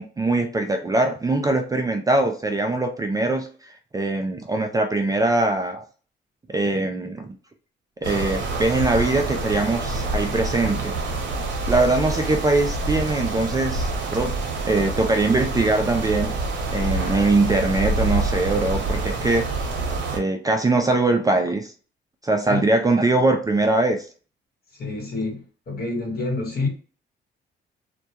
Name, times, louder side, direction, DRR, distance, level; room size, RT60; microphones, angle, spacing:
voice 1, 0.0-5.8 6.5-7.4 8.0-11.0 11.7-14.3 14.7-16.3 16.7-19.5 20.1-21.7 22.2-24.1, right 2 dB, 20° right, 0.3 m, -22 dB
sound 1, 8.0-20.2, right 3 dB, 65° right, 0.7 m, -27 dB
voice 2, 24.7-26.7, left 3 dB, 50° left, 1.0 m, -28 dB
2.2 x 2.1 x 2.7 m
cardioid pair, 90°, 20 cm